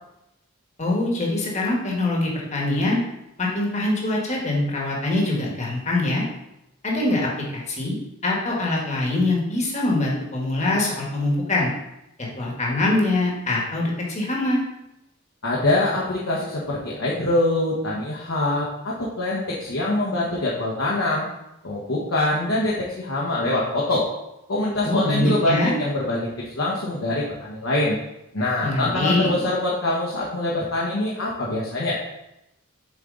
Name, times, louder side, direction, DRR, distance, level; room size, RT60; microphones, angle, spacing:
voice 1, 0.8-3.0 3.4-6.2 6.8-7.9 8.2-11.7 12.2-14.6 24.8-25.7 28.6-29.3, left 2 dB, 35° left, -2 dB, 1.5 m, -23 dB
voice 2, 15.4-21.3 21.6-24.1 24.5-26.3 26.5-28.0 28.3-32.0, left 2 dB, 70° left, -5 dB, 1.1 m, -24 dB
7.3 x 4.6 x 3.8 m, 0.88 s
head